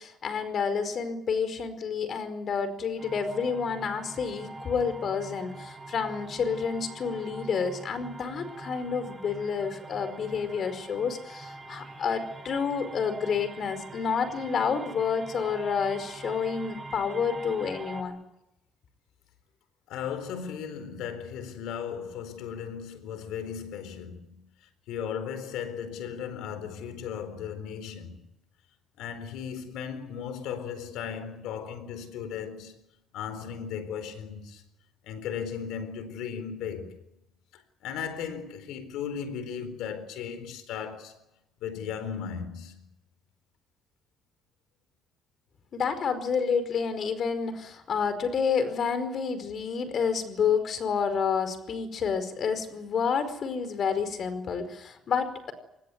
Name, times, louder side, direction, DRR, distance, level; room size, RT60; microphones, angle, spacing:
voice 1, 0.0-18.2 45.7-55.5, left 6 dB, 55° left, 4.9 m, -29 dB
sound 1, 3.0-18.0, right 2 dB, 25° right, 7.5 m, -44 dB
voice 2, 19.9-24.5 24.9-28.1 29.0-32.8 33.1-34.6 35.0-37.0 37.5-41.2 41.6-42.9, left 7 dB, 90° left, 4.1 m, -36 dB
24.5 x 20.5 x 9.6 m
cardioid pair, 90°, 0 cm